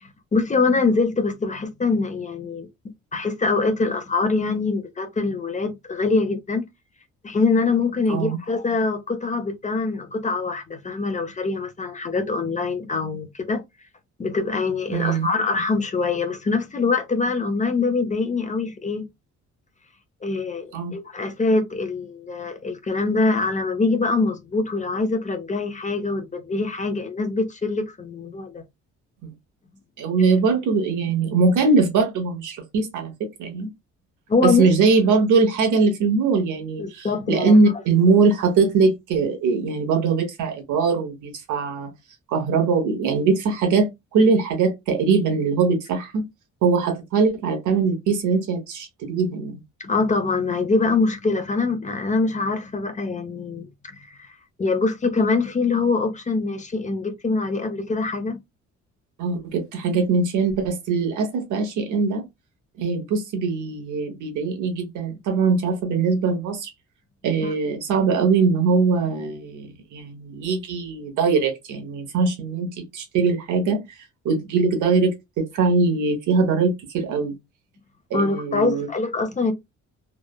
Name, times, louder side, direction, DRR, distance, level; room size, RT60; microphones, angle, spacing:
voice 1, 0.0-2.7 3.1-6.6 7.2-13.6 14.2-19.1 20.2-28.6 34.3-34.7 36.8-37.5 49.8-58.4 67.4-67.5 78.1-79.5, left 3 dB, 25° left, 0.5 m, -24 dB
voice 2, 14.9-15.3 20.7-20.9 29.2-29.3 30.0-33.1 33.4-33.7 34.4-41.9 42.3-46.2 46.6-49.6 59.2-62.2 62.8-66.7 67.2-73.8 74.2-77.4 78.1-78.9, right 4 dB, 80° right, 0.9 m, -21 dB
3.1 x 2.0 x 2.2 m
cardioid pair, 90°, 30 cm